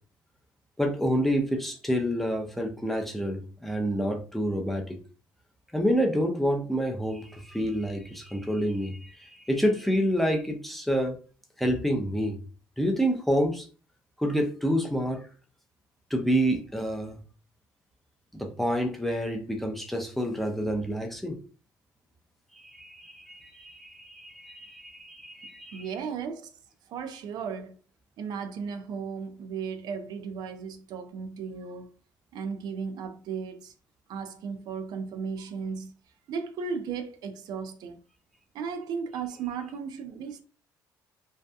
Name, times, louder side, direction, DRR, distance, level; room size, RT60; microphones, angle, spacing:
voice 1, 0.8-5.0 5.7-11.2 11.6-12.4 12.8-13.7 14.2-15.2 16.1-17.2 18.3-21.4 22.5-25.9, equal, ahead, 0.4 m, -28 dB
voice 2, 25.7-26.5 26.9-27.8 28.2-31.9 32.3-33.7 34.1-35.9 36.3-38.0 38.5-40.4, right 6 dB, 65° right, 0.4 m, -35 dB
2.6 x 2.3 x 2.2 m
cardioid pair, 125°, 8 cm